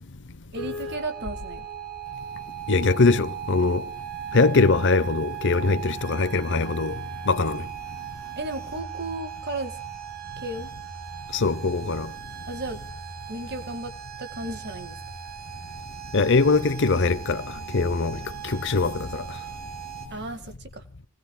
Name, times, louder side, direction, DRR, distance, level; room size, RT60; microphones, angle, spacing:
voice 1, 0.5-1.7 8.4-9.8 10.4-10.7 12.5-12.8 13.3-13.9 14.2-15.0 20.1-20.8, right 2 dB, 50° right, 1.9 m, -34 dB
sound 1, 0.5-20.1, right 7 dB, 90° right, 7.7 m, -38 dB
voice 2, 2.7-3.8 4.3-7.0 7.3-7.6 11.3-12.1 16.1-17.4 17.7-19.2, left 3 dB, 55° left, 0.8 m, -22 dB
29.0 x 20.0 x 2.3 m
head